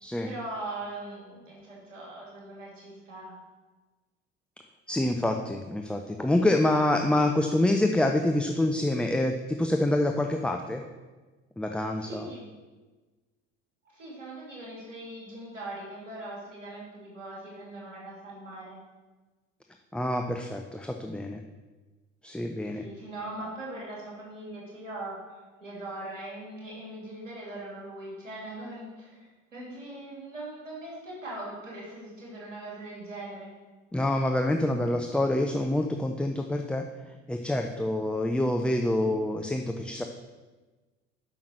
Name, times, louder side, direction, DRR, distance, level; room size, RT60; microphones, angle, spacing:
voice 1, 0.2-3.4 12.0-12.5 13.8-18.8 22.6-25.2 25.6-33.5, right 1 dB, 85° right, -5 dB, 2.7 m, -40 dB
voice 2, 4.9-10.8 11.6-12.3 19.9-21.4 22.2-22.9 33.9-36.8 37.3-40.0, left 1 dB, 5° left, 4 dB, 0.6 m, -26 dB
8.5 x 5.8 x 6.4 m, 1.3 s
figure-of-eight pair, 60°, 37 cm